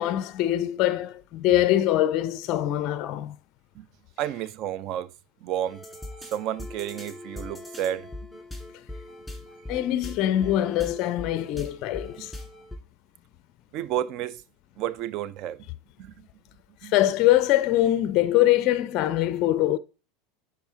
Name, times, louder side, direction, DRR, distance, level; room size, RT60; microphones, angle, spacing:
voice 1, 0.0-3.4 9.7-12.3 16.8-19.8, left 13 dB, 45° left, 0.4 m, -23 dB
voice 2, 4.2-5.1 5.4-5.8 6.3-8.1 13.7-14.4 14.8-15.7 16.0-16.1 16.8-16.9, right 11 dB, 45° right, 0.4 m, -31 dB
sound 1, 5.6-12.8, left 1 dB, ahead, 1.9 m, -40 dB
10.0 x 3.8 x 2.8 m
figure-of-eight pair, 80°, 0 cm